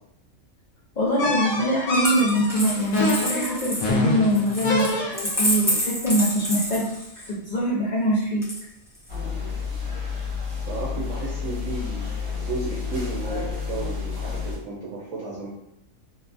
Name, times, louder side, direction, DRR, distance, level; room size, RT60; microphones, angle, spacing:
voice 1, 1.0-6.9 7.3-8.4, equal, 50° left, -8 dB, 0.5 m, -23 dB
sound 1, 1.2-5.5, left 2 dB, 80° left, 1.0 m, -27 dB
Coin (dropping), 1.9-7.3 8.4-9.1, left 1 dB, 5° right, 0.5 m, -28 dB
sound 2, 9.1-14.6, left 5 dB, 50° right, 1.1 m, -30 dB
voice 2, 10.6-12.1 12.4-15.5, right 3 dB, 75° right, -5 dB, 1.0 m, -33 dB
2.8 x 2.3 x 2.4 m, 0.76 s
omnidirectional pair, 1.4 m